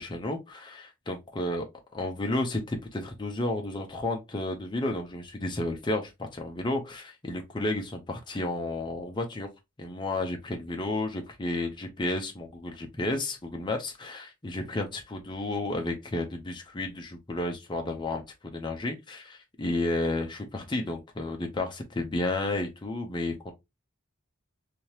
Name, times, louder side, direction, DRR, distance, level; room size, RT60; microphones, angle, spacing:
voice 1, 0.0-1.6 1.9-9.5 9.8-23.5, left 2 dB, 20° left, 0.6 m, -32 dB
3.5 x 2.8 x 2.9 m
head